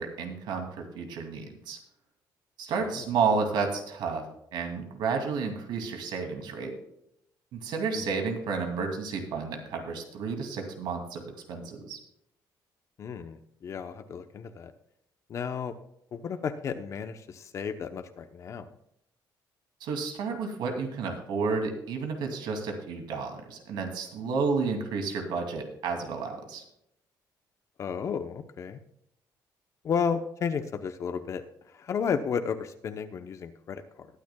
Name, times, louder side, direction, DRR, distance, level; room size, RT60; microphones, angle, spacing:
voice 1, 0.0-1.8 2.6-4.3 4.5-6.7 7.5-11.2 11.5-12.0 19.8-26.6, right 5 dB, 75° right, 4 dB, 2.6 m, -31 dB
voice 2, 13.0-14.7 15.3-15.7 16.1-18.7 27.8-28.8 29.8-31.4 31.7-34.1, left 6 dB, 40° left, 8 dB, 0.8 m, -33 dB
21.0 x 9.3 x 2.3 m, 0.76 s
cardioid pair, 160°, 8 cm